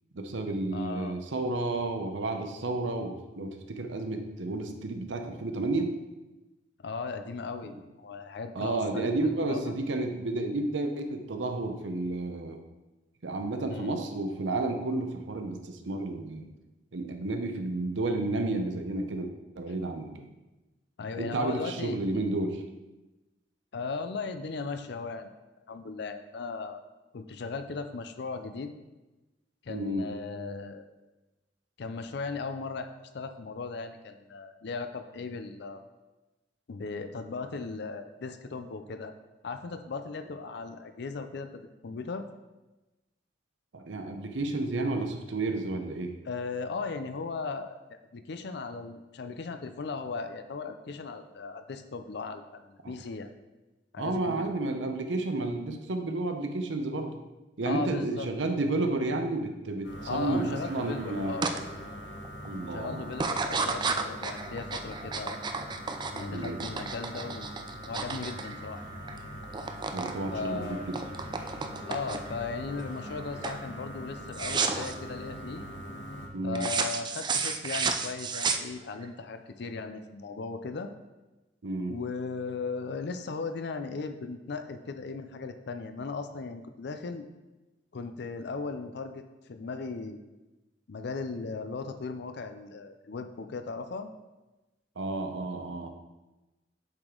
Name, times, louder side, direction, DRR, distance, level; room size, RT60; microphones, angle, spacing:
voice 1, 0.1-5.9 8.5-12.6 13.2-16.5 16.9-20.3 21.2-22.6 29.7-30.1 43.7-46.2 54.0-57.2 57.6-61.4 62.5-63.2 66.3-66.6 69.9-71.0 76.3-76.7 81.6-81.9 95.0-95.9, right 2 dB, 85° right, 5 dB, 0.7 m, -31 dB
voice 2, 0.7-1.2 6.8-9.7 13.7-14.0 21.0-22.3 23.7-25.3 25.7-26.8 27.1-28.7 29.6-30.9 31.8-35.8 36.7-39.1 39.4-41.5 41.8-42.3 46.2-53.3 53.9-54.4 57.6-58.3 60.0-61.7 62.7-65.4 66.1-67.5 67.9-68.9 70.3-70.8 71.9-75.6 76.4-80.9 81.9-87.3 87.9-90.2 90.9-94.1, left 4 dB, 65° left, 8 dB, 0.5 m, -37 dB
sound 1, 59.8-76.3, equal, 85° left, 1.2 m, -42 dB
sound 2, 61.4-61.6 62.0-62.5 63.1-69.2 69.4-70.2 70.5-72.4 72.9-73.2 73.4-73.7 74.3-74.9 76.6-79.1, right 5 dB, 25° right, 0.4 m, -32 dB
7.4 x 4.9 x 3.8 m, 1.1 s
head